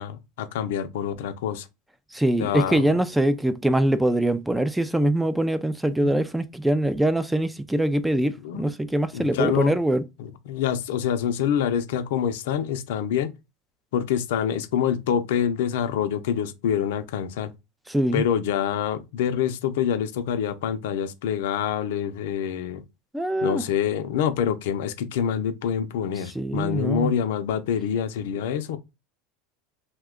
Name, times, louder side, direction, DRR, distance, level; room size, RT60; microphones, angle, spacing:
voice 1, 0.0-1.7 2.4-2.8 6.0-6.2 8.4-8.7 9.1-9.8 10.2-13.3 13.9-17.5 18.1-22.8 23.4-28.8, left 8 dB, 80° left, 0.5 m, -26 dB
voice 2, 2.1-10.0 17.9-18.2 23.1-23.6 26.2-27.1, right 1 dB, 5° right, 0.3 m, -23 dB
2.7 x 2.2 x 3.6 m
supercardioid pair, 115°, 0 cm